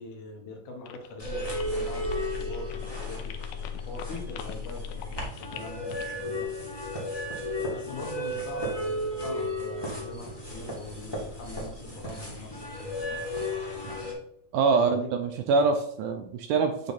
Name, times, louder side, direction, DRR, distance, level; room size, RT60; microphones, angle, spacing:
voice 1, 0.0-3.4 3.9-6.6 7.2-7.3 7.7-13.3 14.7-15.1, left 2 dB, 70° left, 2 dB, 2.5 m, -42 dB
sound 1, 0.9-6.2, left 10 dB, 85° left, 2.2 m, -45 dB
sound 2, 1.2-14.1, left 1 dB, 20° left, 0.6 m, -34 dB
voice 2, 14.5-16.9, right 4 dB, 80° right, 5 dB, 1.9 m, -24 dB
8.2 x 3.4 x 4.1 m, 0.72 s
omnidirectional pair, 4.0 m